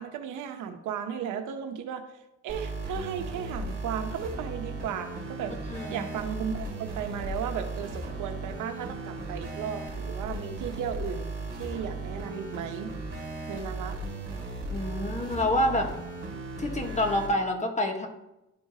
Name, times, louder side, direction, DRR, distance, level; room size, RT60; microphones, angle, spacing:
voice 1, 0.0-2.1 2.4-11.3 11.5-12.9 13.5-14.0, right 8 dB, 85° right, 6 dB, 0.9 m, -35 dB
sound 1, 2.5-17.3, right 2 dB, 35° right, 2.6 m, -36 dB
voice 2, 5.7-6.1 14.7-15.9 16.6-18.1, left 1 dB, 25° left, 4 dB, 1.3 m, -27 dB
11.5 x 4.5 x 2.8 m, 0.92 s
cardioid pair, 90°, 30 cm